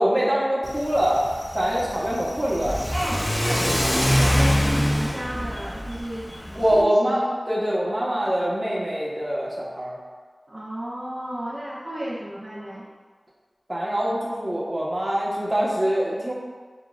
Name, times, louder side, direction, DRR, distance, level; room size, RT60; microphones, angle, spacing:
voice 1, 0.0-2.8 3.6-3.7 6.5-9.9 13.7-16.3, equal, 25° right, -5 dB, 1.1 m, -24 dB
Car / Accelerating revving vroom, 0.6-6.8, equal, 25° left, 0.5 m, -25 dB
voice 2, 2.9-6.3 6.7-7.4 10.5-12.9, right 1 dB, 55° right, -8 dB, 0.7 m, -33 dB
6.7 x 2.4 x 2.5 m, 1.5 s
wide cardioid pair, 50°, 0 cm